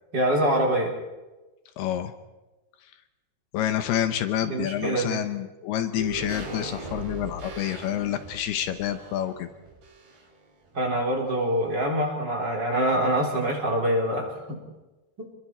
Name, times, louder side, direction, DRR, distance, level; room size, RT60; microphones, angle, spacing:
voice 1, 0.1-0.9 4.4-5.2 10.7-14.6, right 1 dB, 25° right, -1 dB, 3.6 m, -25 dB
voice 2, 1.8-2.1 3.5-9.5, left 11 dB, 75° left, 9 dB, 2.9 m, -28 dB
sound 1, 6.0-10.4 10.7-10.8, right 3 dB, 70° right, 5.8 m, -39 dB
29.5 x 22.0 x 4.4 m, 1.1 s
omnidirectional pair, 4.8 m